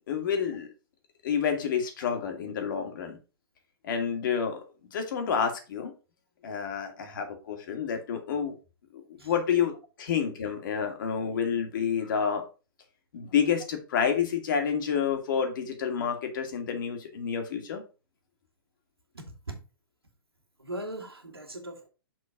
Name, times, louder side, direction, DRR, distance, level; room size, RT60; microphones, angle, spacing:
voice 1, 0.1-0.7 1.2-3.2 3.8-5.9 6.4-8.5 9.1-12.4 13.1-17.8, left 7 dB, 55° left, 2.0 m, -29 dB
voice 2, 19.1-19.6 20.6-21.9, right 1 dB, 85° right, 1.8 m, -39 dB
6.4 x 3.8 x 5.0 m
figure-of-eight pair, 115°, 12 cm